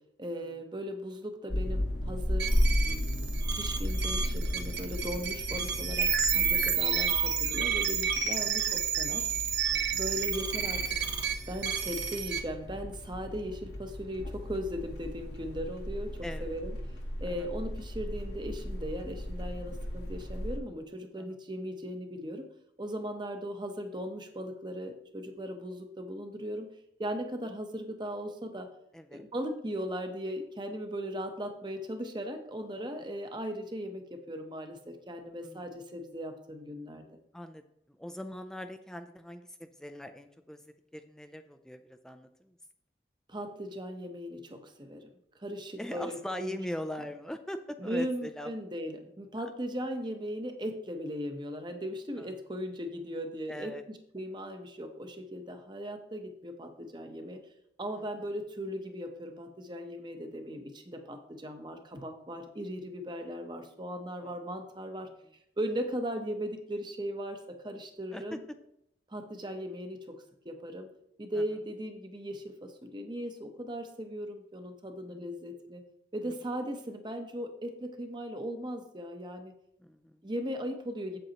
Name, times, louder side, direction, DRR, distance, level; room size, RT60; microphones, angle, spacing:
voice 1, 0.2-9.3 9.9-10.8 11.5-16.8 17.2-22.5 22.8-26.7 27.0-28.7 29.1-37.1 43.3-45.1 45.3-46.6 47.8-57.4 57.8-65.1 65.6-68.4 69.1-70.1 70.4-70.9 71.2-75.8 76.1-79.5 80.2-81.2, equal, 25° right, 6 dB, 0.8 m, -38 dB
sound 1, 1.5-20.6, left 1 dB, 75° left, 1.2 m, -35 dB
sound 2, 2.4-12.4, right 7 dB, 70° right, 0.9 m, -30 dB
voice 2, 6.5-6.9 9.7-10.0 16.2-16.5 17.3-17.5 21.2-21.3 28.9-29.2 32.8-32.9 35.4-35.7 37.3-37.6 38.0-40.6 40.9-42.5 45.8-48.5 52.2-52.3 53.5-53.8 64.2-64.3 68.1-68.4 71.4-71.5 75.1-75.2 76.2-76.3 79.8-80.2, equal, 5° left, 7 dB, 0.3 m, -41 dB
7.9 x 7.7 x 2.9 m, 0.77 s
head